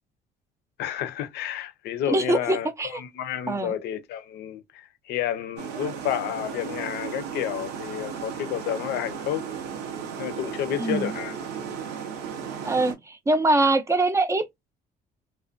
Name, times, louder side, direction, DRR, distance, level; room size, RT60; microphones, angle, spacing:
voice 1, 0.8-9.5 10.2-11.3, left 10 dB, 75° left, 0.5 m, -30 dB
voice 2, 2.1-3.0 3.5-3.8 10.8-11.1 12.6-14.5, right 2 dB, 15° right, 0.4 m, -23 dB
sound 1, 5.6-12.9, right 7 dB, 90° right, 0.7 m, -35 dB
2.4 x 2.1 x 2.4 m
cardioid pair, 110°, 17 cm